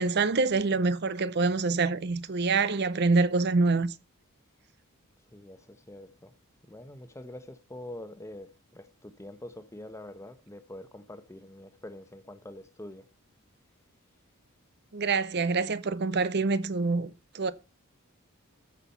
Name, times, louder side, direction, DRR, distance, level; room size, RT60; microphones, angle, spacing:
voice 1, 0.0-3.9 14.9-17.5, right 3 dB, 50° right, 0.7 m, -26 dB
voice 2, 5.3-6.3 6.7-13.1, left 1 dB, 15° left, 1.0 m, -45 dB
14.0 x 6.1 x 5.6 m
head